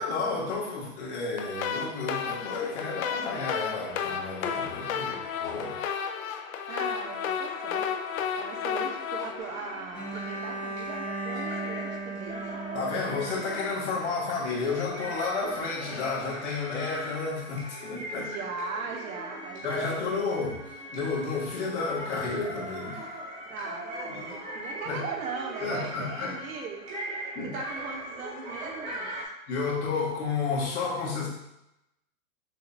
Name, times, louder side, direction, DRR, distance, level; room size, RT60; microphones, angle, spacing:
voice 1, 0.0-5.8 12.7-18.3 19.6-23.0 24.1-24.2 24.9-25.0 25.6-26.3 27.4-27.5 29.5-31.3, left 4 dB, 55° left, -4 dB, 1.6 m, -31 dB
sound 1, 1.4-10.5, left 7 dB, 75° left, 0.6 m, -33 dB
voice 2, 6.7-12.6 18.1-20.1 23.5-29.1, right 5 dB, 75° right, 2 dB, 1.1 m, -39 dB
sound 2, 9.4-29.2, right 1 dB, 15° right, 0.7 m, -40 dB
Bowed string instrument, 9.9-14.0, right 2 dB, 10° left, 0.8 m, -37 dB
6.4 x 2.5 x 2.7 m, 0.84 s
supercardioid pair, 165°, 42 cm